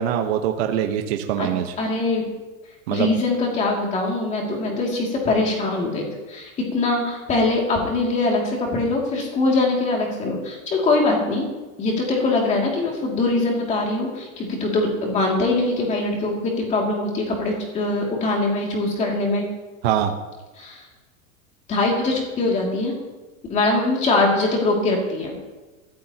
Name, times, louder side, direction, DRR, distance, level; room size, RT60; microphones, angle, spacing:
voice 1, 0.0-1.7 2.9-3.1 19.8-20.1, right 10 dB, 50° right, 4 dB, 1.1 m, -23 dB
voice 2, 1.8-2.3 2.9-11.5 11.8-19.4 20.6-20.8 21.7-22.9 23.5-25.3, left 2 dB, 15° left, -1 dB, 2.6 m, -22 dB
21.5 x 15.0 x 3.0 m, 1.2 s
supercardioid pair, 175°, 40 cm